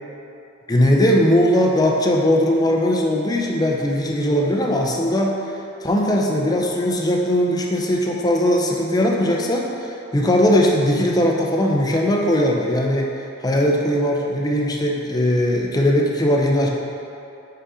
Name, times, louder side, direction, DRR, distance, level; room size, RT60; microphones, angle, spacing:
voice 1, 0.7-5.4 5.8-13.1 13.4-16.7, left 1 dB, 20° left, -1 dB, 0.6 m, -19 dB
5.1 x 5.1 x 5.0 m, 2.8 s
head